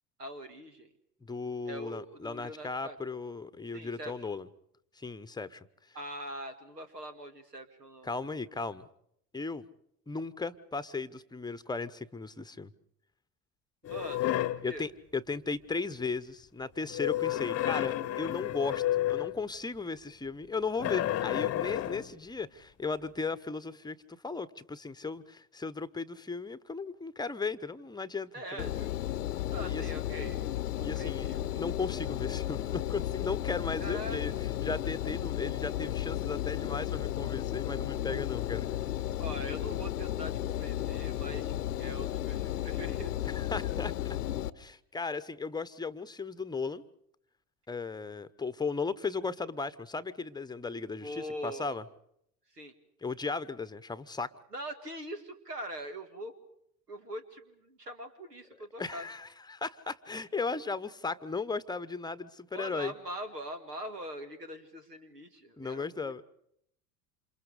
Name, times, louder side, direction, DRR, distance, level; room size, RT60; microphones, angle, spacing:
voice 1, 0.2-0.9 1.7-3.0 3.7-4.3 5.9-8.1 13.8-14.8 28.3-29.0 29.5-30.5 30.8-31.5 33.8-34.4 39.2-41.5 41.8-43.3 51.0-51.8 52.5-52.7 54.5-56.4 56.9-59.1 62.5-66.2, right 1 dB, 90° right, 9 dB, 2.0 m, -42 dB
voice 2, 1.2-4.5 5.0-5.7 8.0-8.9 9.3-9.7 10.1-12.7 14.6-28.6 29.6-29.8 30.8-38.7 43.2-43.9 44.6-46.8 47.7-51.8 53.0-54.3 58.8-62.9 65.6-66.2, left 4 dB, 10° left, 15 dB, 0.9 m, -36 dB
sound 1, 13.8-14.7 16.9-19.4 20.8-22.1, left 13 dB, 30° left, 0.9 m, -31 dB
Engine, 28.6-44.5, left 12 dB, 80° left, 0.9 m, -34 dB
28.0 x 27.5 x 5.0 m, 0.72 s
figure-of-eight pair, 70°, 46 cm